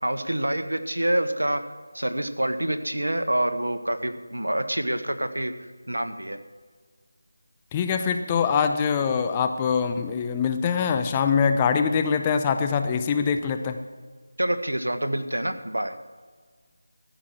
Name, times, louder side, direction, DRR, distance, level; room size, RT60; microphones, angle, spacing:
voice 1, 0.0-1.6 1.9-5.5 5.9-6.4 14.4-15.9, right 1 dB, 90° right, 9 dB, 1.1 m, -26 dB
voice 2, 7.7-13.8, left 6 dB, 15° left, 7 dB, 0.6 m, -23 dB
14.0 x 6.1 x 7.3 m, 1.5 s
figure-of-eight pair, 165°, 0 cm